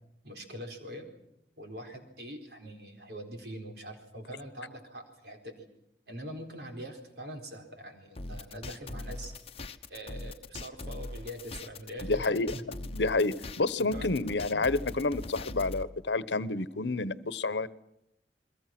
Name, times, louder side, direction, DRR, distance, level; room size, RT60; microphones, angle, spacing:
voice 1, 0.2-1.1 1.6-5.7 6.1-9.4 9.9-12.6 13.8-14.2, equal, 65° right, 3 dB, 4.4 m, -43 dB
sound 1, 8.2-15.8, left 2 dB, 35° left, 1.0 m, -41 dB
voice 2, 12.1-12.6 12.9-17.7, left 3 dB, 85° left, 16 dB, 1.0 m, -29 dB
29.5 x 22.5 x 6.1 m, 0.79 s
head